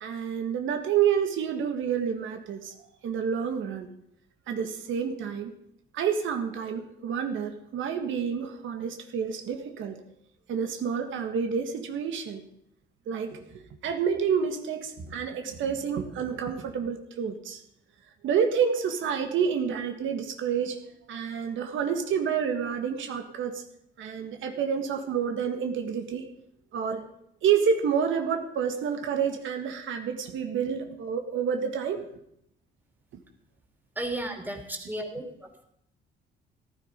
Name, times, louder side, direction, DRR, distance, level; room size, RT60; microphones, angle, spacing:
voice 1, 0.0-2.7 3.0-3.9 4.5-5.5 5.9-10.0 10.5-12.4 13.1-17.6 18.2-20.8 21.1-23.6 24.0-26.2 26.7-27.0 27.4-32.0, right 7 dB, 80° right, 5 dB, 1.7 m, -29 dB
voice 2, 34.0-35.2, right 1 dB, 10° right, 3 dB, 3.1 m, -33 dB
14.5 x 12.0 x 5.2 m, 0.74 s
cardioid pair, 90°, 20 cm